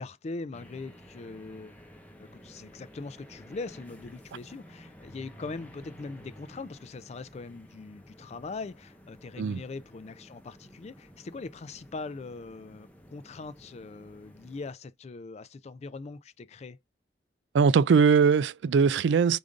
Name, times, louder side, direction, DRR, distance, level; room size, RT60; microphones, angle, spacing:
voice 1, 0.0-1.8 2.2-16.8, left 3 dB, 35° left, 0.4 m, -41 dB
sound 1, 0.5-14.7, equal, 10° left, 0.8 m, -52 dB
voice 2, 17.5-19.4, right 6 dB, 75° right, 0.3 m, -21 dB
5.0 x 2.6 x 3.6 m
head